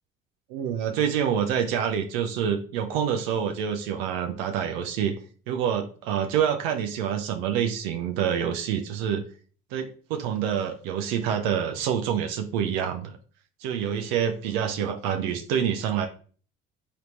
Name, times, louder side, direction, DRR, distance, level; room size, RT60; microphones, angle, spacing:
voice 1, 0.5-5.2 5.5-9.2 9.7-13.1 13.6-16.1, right 8 dB, 80° right, 6 dB, 0.5 m, -27 dB
3.8 x 3.5 x 2.9 m, 0.42 s
hypercardioid pair, 60°, 29 cm